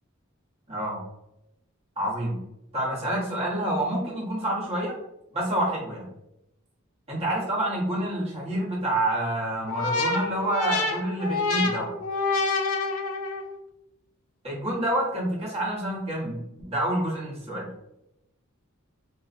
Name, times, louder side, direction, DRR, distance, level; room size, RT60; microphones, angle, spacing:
voice 1, 0.7-1.0 2.0-2.4 2.7-5.0 5.3-6.1 7.1-12.0 14.4-17.7, right 1 dB, 30° right, -5 dB, 0.8 m, -28 dB
sound 1, 9.7-13.6, left 3 dB, 90° left, 0.4 m, -27 dB
2.5 x 2.1 x 2.4 m, 0.85 s
head